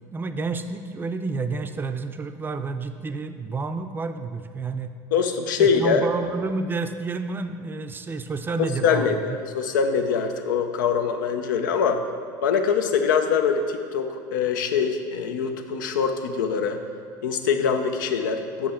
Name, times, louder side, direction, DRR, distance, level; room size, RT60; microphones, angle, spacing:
voice 1, 0.1-4.9 5.6-9.4, right 4 dB, 20° right, 9 dB, 0.5 m, -30 dB
voice 2, 5.1-6.0 8.8-12.0 12.4-16.8 17.2-18.7, left 6 dB, 90° left, 6 dB, 0.6 m, -23 dB
7.5 x 5.4 x 4.3 m, 2.3 s
supercardioid pair, 90°, 10 cm